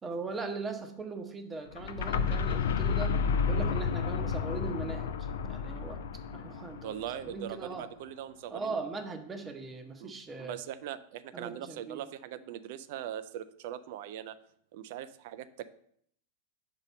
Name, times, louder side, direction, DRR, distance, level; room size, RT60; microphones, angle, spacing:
voice 1, 0.0-3.2 3.5-5.1 5.4-6.0 6.3-7.0 7.2-7.9 8.5-10.6 11.3-12.0, right 4 dB, 15° right, 6 dB, 0.7 m, -39 dB
sound 1, 1.7-7.5, left 6 dB, 60° left, 0.4 m, -31 dB
voice 2, 6.8-8.8 10.0-14.4 14.7-15.7, right 11 dB, 50° right, 14 dB, 0.4 m, -41 dB
5.4 x 4.0 x 5.4 m, 0.67 s
figure-of-eight pair, 90°, 0 cm